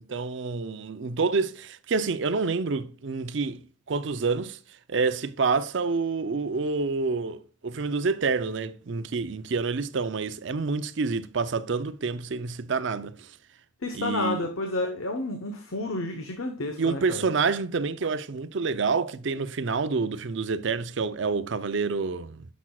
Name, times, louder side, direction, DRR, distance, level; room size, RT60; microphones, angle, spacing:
voice 1, 0.1-3.6 3.9-4.6 4.9-13.3 13.9-14.5 16.8-22.5, right 4 dB, 60° right, 0.5 m, -28 dB
voice 2, 13.8-17.2, left 2 dB, 90° left, 1.0 m, -30 dB
10.0 x 6.1 x 2.3 m
head